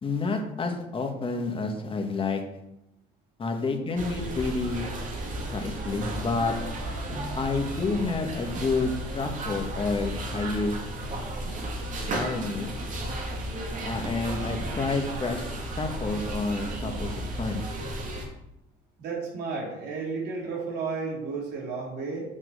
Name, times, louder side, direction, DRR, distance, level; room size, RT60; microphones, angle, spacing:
voice 1, 0.0-2.4 3.4-4.9 5.5-6.5 7.4-10.8 11.0-11.2 12.1-12.7 13.8-15.4 15.7-17.6, left 3 dB, 30° left, 4 dB, 1.7 m, -29 dB
sound 1, 4.0-18.3, right 1 dB, 50° right, 2.3 m, -34 dB
voice 2, 19.0-22.2, right 4 dB, 80° right, -2 dB, 3.5 m, -32 dB
7.9 x 6.1 x 6.5 m, 0.87 s
cardioid pair, 110°, 17 cm